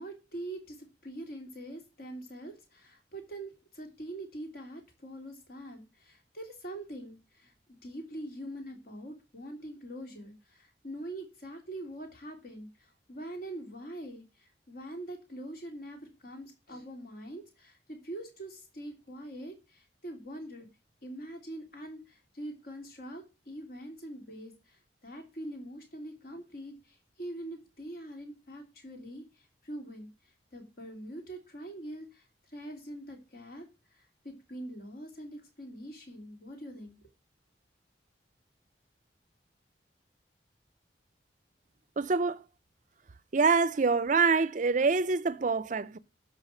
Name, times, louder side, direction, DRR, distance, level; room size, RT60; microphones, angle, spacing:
voice 1, 0.0-20.7 21.0-30.1 30.5-37.0, right 1 dB, 55° left, 3.2 m, -44 dB
voice 2, 42.0-42.4 43.3-46.0, right 4 dB, 45° right, 0.5 m, -25 dB
12.5 x 5.6 x 6.4 m
head